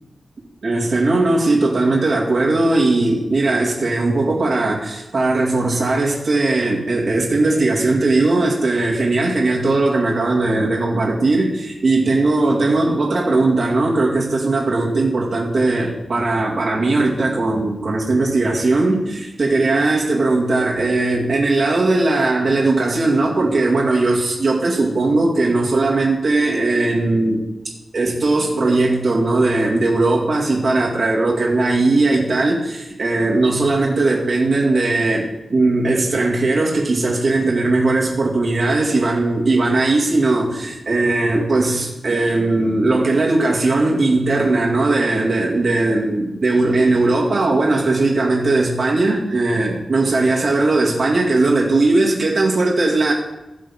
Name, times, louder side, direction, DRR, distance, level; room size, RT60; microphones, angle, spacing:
voice 1, 0.6-27.5 27.9-53.1, right 2 dB, 55° right, -3 dB, 2.2 m, -18 dB
16.5 x 6.4 x 3.7 m, 1.0 s
wide cardioid pair, 135°, 0 cm